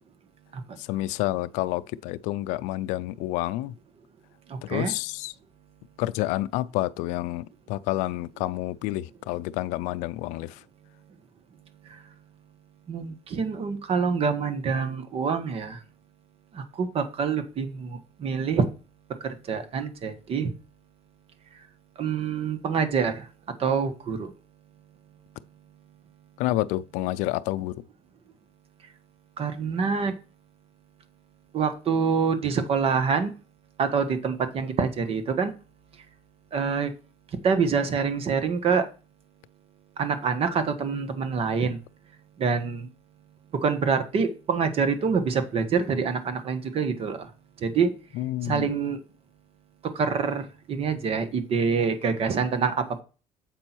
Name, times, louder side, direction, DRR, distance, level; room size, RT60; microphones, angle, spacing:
voice 1, 0.8-3.8 4.6-5.3 6.0-10.6 26.4-27.8 48.1-48.7, left 16 dB, 85° left, 0.4 m, -29 dB
voice 2, 4.5-4.9 12.9-15.8 16.5-18.6 19.2-20.5 22.0-23.3 23.6-24.3 29.4-30.1 31.5-33.3 33.8-35.5 36.5-36.9 37.4-38.9 40.0-41.8 42.4-42.9 43.6-47.3 47.6-47.9 48.4-49.0 49.9-53.0, right 5 dB, 50° right, 1.4 m, -26 dB
7.6 x 5.3 x 4.5 m
cardioid pair, 95°, 12 cm